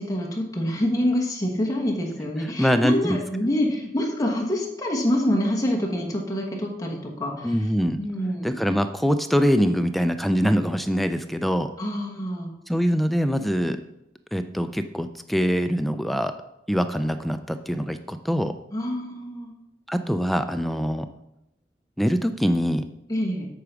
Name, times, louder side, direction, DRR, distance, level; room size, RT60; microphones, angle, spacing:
voice 1, 0.0-7.5 8.0-8.6 11.8-12.5 18.7-19.5 23.1-23.5, left 1 dB, 20° left, -1 dB, 1.2 m, -26 dB
voice 2, 2.6-3.2 7.4-8.0 8.4-11.7 12.7-13.8 14.3-16.3 16.7-18.6 19.9-21.1 22.0-22.9, equal, ahead, 9 dB, 0.3 m, -23 dB
8.3 x 4.8 x 6.1 m, 0.85 s
head